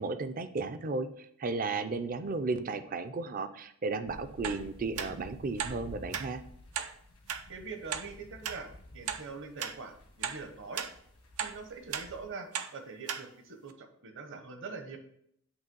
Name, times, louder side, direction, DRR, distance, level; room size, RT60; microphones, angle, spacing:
voice 1, 0.0-6.4, right 3 dB, 40° right, 10 dB, 0.5 m, -34 dB
sound 1, 4.1-12.2, left 1 dB, 85° left, 1.4 m, -52 dB
sound 2, 4.4-4.6 5.0-5.1 5.6-5.8 6.1-6.3 6.7-6.9 7.3-7.4 7.9-8.0 8.4-8.6 9.1-9.2 9.6-9.8 10.2-10.4 10.8-10.9 11.4-11.5 11.9-12.1 12.5-12.7 13.1-13.2 13.7-13.8, right 8 dB, 85° right, 0.6 m, -35 dB
voice 2, 7.5-10.8 11.4-15.0, right 4 dB, 55° right, 6 dB, 1.0 m, -43 dB
8.1 x 3.1 x 5.3 m, 0.69 s
head